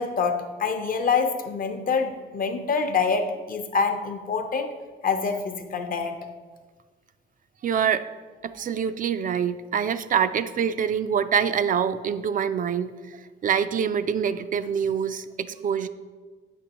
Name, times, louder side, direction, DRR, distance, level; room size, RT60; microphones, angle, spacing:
voice 1, 0.0-4.7 5.0-6.3, left 5 dB, 45° left, 6 dB, 0.8 m, -26 dB
voice 2, 7.6-8.1 8.4-13.2 13.4-15.9, right 7 dB, 45° right, 12 dB, 0.4 m, -25 dB
8.4 x 6.0 x 2.9 m, 1.4 s
cardioid pair, 90°, 20 cm